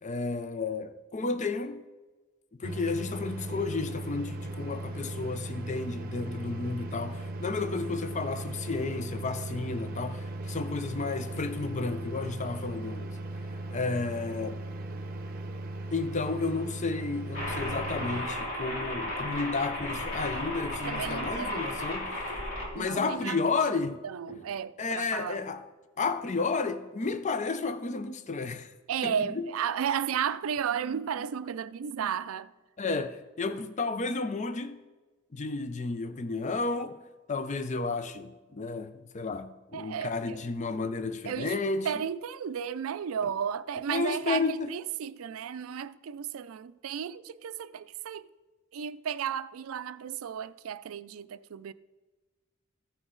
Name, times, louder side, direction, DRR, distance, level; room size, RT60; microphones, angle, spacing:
voice 1, 0.0-1.8 2.6-13.2 13.7-14.6 15.9-22.4 22.7-24.0 24.3-24.4 24.8-25.6 26.0-28.7 29.0-29.4 32.8-34.8 35.3-37.0 37.3-41.9 43.9-44.7, left 4 dB, 35° left, 0.5 m, -32 dB
sound 1, 2.6-18.2, right 2 dB, 45° right, 0.7 m, -38 dB
sound 2, 17.3-22.7, left 1 dB, 75° left, 2.9 m, -34 dB
voice 2, 20.9-21.8 22.8-23.4 24.0-25.4 28.9-32.5 39.7-40.4 41.2-41.6 41.8-48.3 48.7-51.7, right 8 dB, 85° right, 0.4 m, -33 dB
14.5 x 6.1 x 3.8 m
head